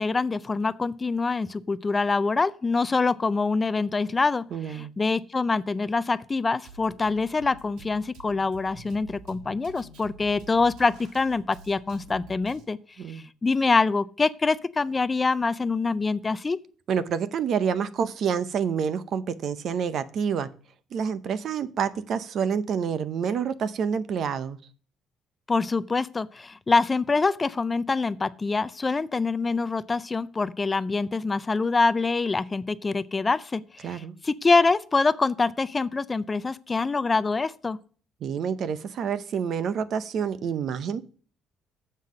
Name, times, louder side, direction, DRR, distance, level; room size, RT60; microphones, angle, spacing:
voice 1, 0.0-12.8 13.1-16.6 25.5-37.8, left 4 dB, 20° left, 0.3 m, -25 dB
voice 2, 4.5-4.9 13.0-13.3 16.9-20.5 20.9-24.6 33.8-34.1 38.2-41.0, right 7 dB, 55° right, 0.6 m, -28 dB
Drum kit, 6.6-12.6, right 3 dB, 80° right, 1.5 m, -48 dB
7.4 x 5.6 x 6.4 m
cardioid pair, 120°, 0 cm